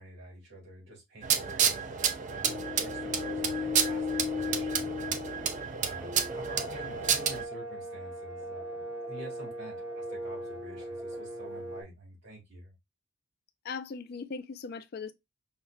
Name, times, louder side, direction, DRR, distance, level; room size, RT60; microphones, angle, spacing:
voice 1, 0.0-5.2 5.8-12.7, right 1 dB, 55° right, 2.0 m, -47 dB
sound 1, 1.2-7.4, right 7 dB, 35° right, 0.3 m, -30 dB
sound 2, 2.4-11.8, left 3 dB, 20° right, 0.9 m, -37 dB
voice 2, 13.6-15.1, left 5 dB, 45° left, 0.4 m, -39 dB
5.6 x 2.2 x 2.3 m
head